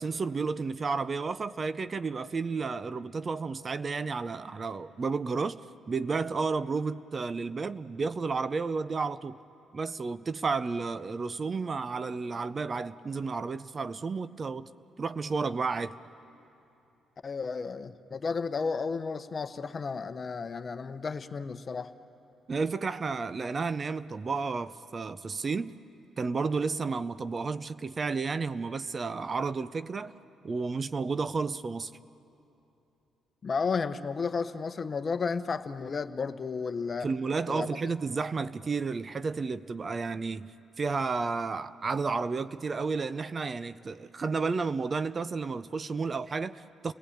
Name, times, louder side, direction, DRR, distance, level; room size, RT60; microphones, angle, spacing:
voice 1, 0.0-5.6 5.9-9.4 9.7-14.7 15.0-15.9 22.5-25.7 26.2-30.1 30.4-31.9 37.0-40.5 40.8-46.9, right 4 dB, 35° right, 0.6 m, -32 dB
voice 2, 17.2-21.9 33.4-37.1 37.5-37.7, left 5 dB, 40° left, 0.9 m, -33 dB
29.5 x 18.5 x 8.6 m
cardioid pair, 90°, 0 cm